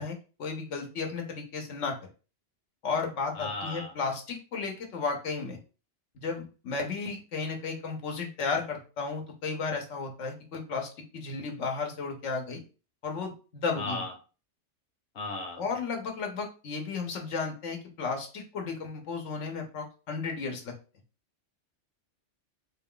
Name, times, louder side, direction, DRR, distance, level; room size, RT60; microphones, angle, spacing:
voice 1, 0.0-2.0 2.8-5.6 6.2-12.6 13.0-14.0 15.6-20.8, left 4 dB, 85° left, 3 dB, 1.2 m, -34 dB
voice 2, 3.3-3.9 13.8-14.1 15.1-15.6, left 2 dB, 55° left, 3 dB, 1.0 m, -35 dB
4.1 x 2.3 x 3.6 m, 0.34 s
omnidirectional pair, 1.2 m